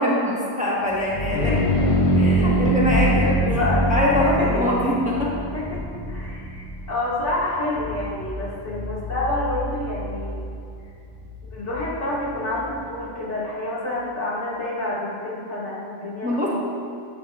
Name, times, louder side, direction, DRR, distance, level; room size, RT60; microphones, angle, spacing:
voice 1, 0.0-1.5 1.9-3.6 3.9-5.3 16.2-16.5, left 1 dB, 5° right, -5 dB, 1.1 m, -23 dB
sound 1, 0.9-12.5, equal, 35° left, 0.6 m, -25 dB
voice 2, 1.3-1.9 3.0-4.8 5.5-10.4 11.5-16.5, left 1 dB, 75° left, -7 dB, 2.3 m, -28 dB
11.5 x 8.2 x 2.4 m, 2.6 s
omnidirectional pair, 1.2 m